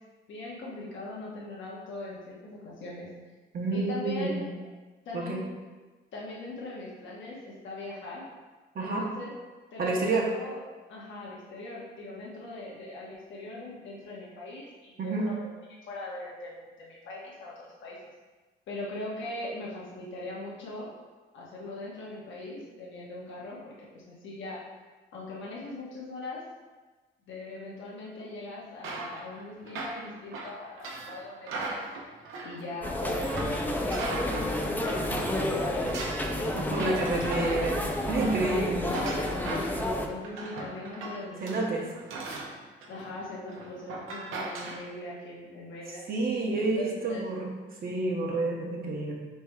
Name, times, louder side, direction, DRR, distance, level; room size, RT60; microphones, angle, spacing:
voice 1, 0.3-3.1 3.7-4.5 5.0-5.4 6.1-8.2 8.8-9.3 9.7-10.6 10.9-15.5 15.9-18.0 18.7-20.9 21.3-24.6 25.1-26.4 27.3-31.8 32.4-33.8 34.0-35.1 35.4-36.0 36.3-37.7 38.5-41.9 42.9-46.0 46.5-47.2 48.1-48.3, left 2 dB, 70° left, -5 dB, 1.2 m, -40 dB
voice 2, 3.5-4.4 5.1-5.4 8.7-9.1 9.8-10.3 15.0-15.3 36.5-37.8 38.1-38.9 41.4-41.9 46.1-47.5 47.8-49.2, right 2 dB, 50° right, -3 dB, 0.9 m, -29 dB
sound 1, 28.8-35.4 35.6-44.8, right 2 dB, 90° right, 0.7 m, -38 dB
sound 2, 32.8-40.1, left 1 dB, 10° left, 0.5 m, -31 dB
3.4 x 3.3 x 4.6 m, 1.3 s
cardioid pair, 90°, 20 cm